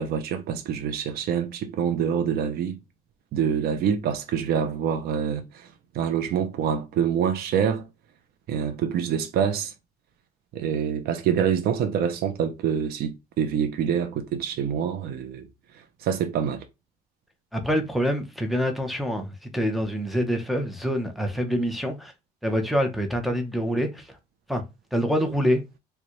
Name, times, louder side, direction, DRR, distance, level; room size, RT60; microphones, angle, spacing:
voice 1, 0.0-2.8 3.3-5.7 5.9-7.9 8.5-9.7 10.5-15.5 15.7-16.7, right 8 dB, 65° right, 0.6 m, -26 dB
voice 2, 17.5-22.1 22.4-24.1 24.5-24.6 24.9-25.6, equal, ahead, 0.8 m, -26 dB
3.9 x 2.3 x 3.0 m
cardioid pair, 110°, 17 cm